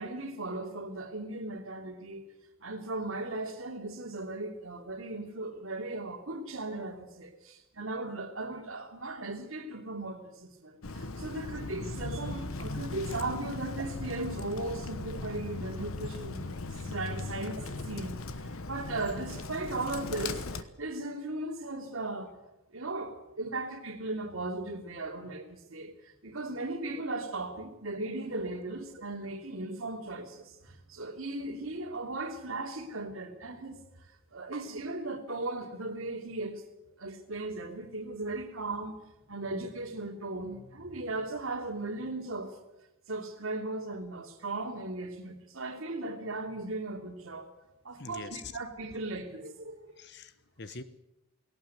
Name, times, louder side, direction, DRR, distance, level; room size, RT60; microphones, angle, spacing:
voice 1, 0.0-2.2 2.6-18.1 18.4-22.3 22.7-33.8 34.3-36.6 37.0-39.0 39.3-42.6 43.1-47.5 47.8-49.9, right 2 dB, 80° right, 4 dB, 3.0 m, -37 dB
Bird, 10.8-20.6, left 2 dB, 80° left, 1.2 m, -38 dB
voice 2, 48.0-48.5 50.0-50.8, left 4 dB, 50° left, 13 dB, 1.0 m, -44 dB
18.5 x 17.5 x 9.2 m, 0.92 s
head